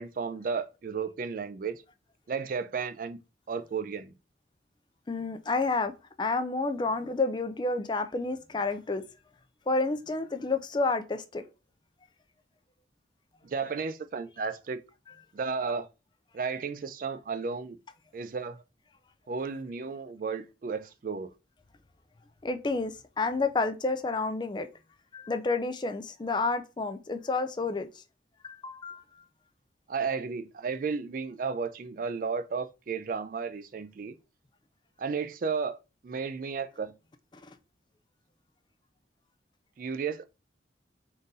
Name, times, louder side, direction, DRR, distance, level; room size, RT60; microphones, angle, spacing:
voice 1, 0.0-1.8 2.3-3.2 3.5-4.1 13.4-14.8 15.3-15.9 16.3-17.8 18.1-18.6 19.3-21.3 29.9-34.2 35.0-35.8 36.0-37.0 39.8-40.2, right 5 dB, 45° right, 0.3 m, -33 dB
voice 2, 5.1-5.9 6.2-9.0 9.7-11.4 22.4-24.7 25.1-27.9 28.4-29.0 37.4-37.5, left 3 dB, 25° left, 0.4 m, -30 dB
3.8 x 2.5 x 4.0 m
head